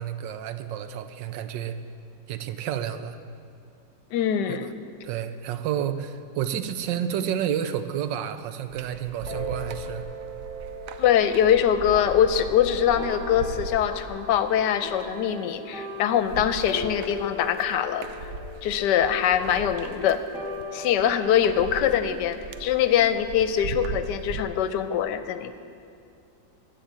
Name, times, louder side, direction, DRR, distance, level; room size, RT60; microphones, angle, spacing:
voice 1, 0.0-1.8 2.3-3.2 4.5-4.6 5.0-10.0, right 9 dB, 90° right, 10 dB, 1.3 m, -30 dB
voice 2, 4.1-4.7 11.0-18.1 18.6-20.2 20.7-25.5, left 9 dB, 75° left, 11 dB, 1.2 m, -23 dB
sound 1, 8.7-24.4, right 5 dB, 65° right, 0.8 m, -39 dB
sound 2, 9.3-24.0, left 1 dB, 20° left, 1.5 m, -39 dB
14.5 x 5.1 x 8.8 m, 2.4 s
omnidirectional pair, 2.0 m